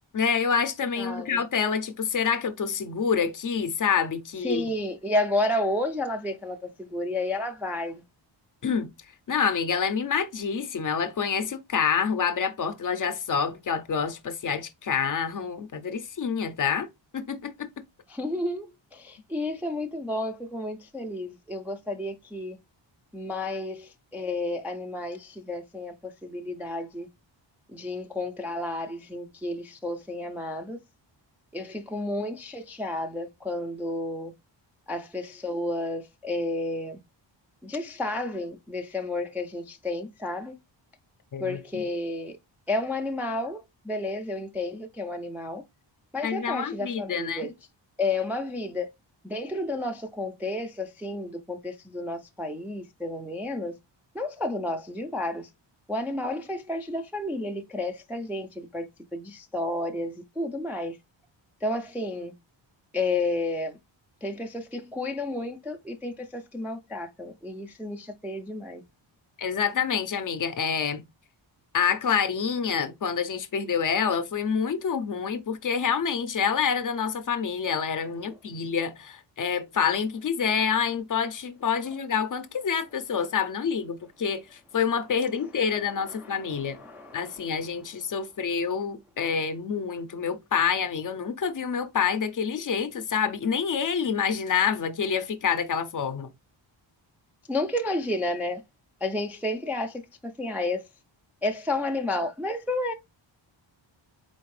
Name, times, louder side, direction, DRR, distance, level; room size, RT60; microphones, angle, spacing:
voice 1, 0.1-4.6 8.6-8.9 9.3-16.9 17.1-17.7 41.3-41.8 46.2-47.5 69.4-71.0 71.7-86.8 87.1-96.3, left 6 dB, 45° left, 0.5 m, -27 dB
voice 2, 1.0-1.4 4.4-8.0 18.1-22.6 23.1-27.1 27.7-30.8 31.5-34.3 34.9-37.0 37.6-40.5 41.4-42.4 42.7-45.6 46.1-47.5 48.0-48.9 49.2-53.7 54.1-55.5 55.9-58.9 59.1-61.0 61.6-62.3 62.9-63.8 64.2-68.8 78.3-78.4 86.0-87.5 97.5-98.6 99.0-100.9 101.4-102.9, left 2 dB, 5° right, 0.3 m, -31 dB
4.3 x 3.3 x 3.1 m
wide cardioid pair, 160°, 46 cm